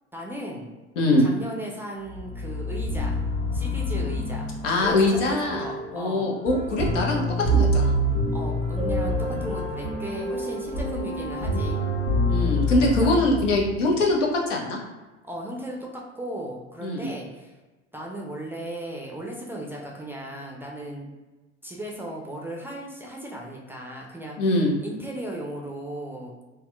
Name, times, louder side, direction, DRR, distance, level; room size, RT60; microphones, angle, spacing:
voice 1, 0.1-0.7 1.2-3.2 3.5-6.3 8.3-11.8 13.0-13.2 15.2-17.5 17.9-21.1 21.6-24.5 24.8-26.4, right 1 dB, 5° right, -2 dB, 0.4 m, -36 dB
voice 2, 1.0-1.3 4.6-7.9 12.3-14.8 16.8-17.1 24.4-24.7, left 2 dB, 80° left, -1 dB, 0.7 m, -23 dB
sound 1, 2.1-14.1, equal, 15° left, 1.0 m, -26 dB
3.4 x 2.2 x 2.3 m, 1.2 s
hypercardioid pair, 70°, 37 cm